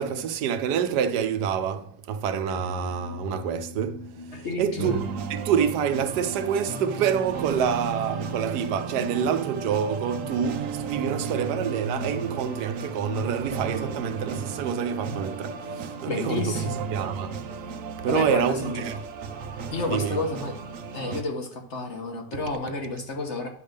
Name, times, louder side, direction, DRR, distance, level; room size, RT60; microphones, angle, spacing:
voice 1, 0.0-5.0 5.3-16.5 16.9-17.3 18.0-19.0 19.9-20.2, right 8 dB, 85° right, 1.3 m, -27 dB
sound 1, 2.4-18.0, left 2 dB, 80° left, 1.5 m, -41 dB
voice 2, 4.3-5.0 16.1-16.8 18.0-18.7 19.7-20.5 20.9-23.5, left 3 dB, 45° left, 1.4 m, -30 dB
sound 2, 4.8-21.2, right 6 dB, 65° right, 0.9 m, -35 dB
9.8 x 3.5 x 6.6 m
omnidirectional pair, 1.7 m